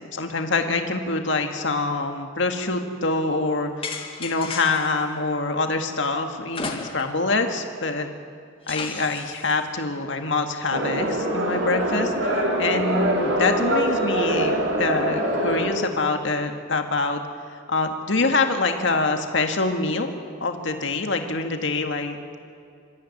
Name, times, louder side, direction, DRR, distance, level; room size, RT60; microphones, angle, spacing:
voice 1, 0.1-3.7 4.2-8.1 8.7-17.2 17.7-20.1 20.4-22.4, left 3 dB, 65° left, 5 dB, 1.9 m, -25 dB
sound 1, 3.8-5.0 6.5-7.3 7.6-7.7 8.7-9.5, left 4 dB, 25° left, 1.9 m, -34 dB
sound 2, 10.7-15.7, right 1 dB, 75° right, 4.1 m, -24 dB
27.0 x 14.0 x 9.7 m, 2.3 s
head